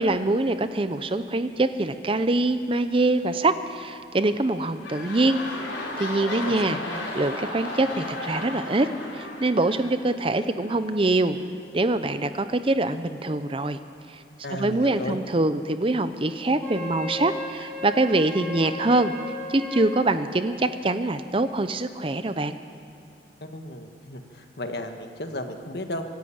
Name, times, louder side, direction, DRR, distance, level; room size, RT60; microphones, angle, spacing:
voice 1, 0.0-5.4 6.0-6.8 7.1-8.9 9.1-11.4 11.7-13.8 14.1-14.2 14.5-19.1 19.5-22.6, right 2 dB, 30° right, 11 dB, 0.6 m, -24 dB
sound 1, 4.5-10.7 11.4-11.5, left 2 dB, 85° left, 4.9 m, -35 dB
voice 2, 6.4-6.8 14.4-15.2 23.4-26.0, left 1 dB, 55° left, 5 dB, 1.6 m, -34 dB
Wind instrument woodwind instrument, 16.6-20.0, left 1 dB, 10° left, 4.6 m, -36 dB
25.0 x 12.0 x 8.8 m, 2.6 s
head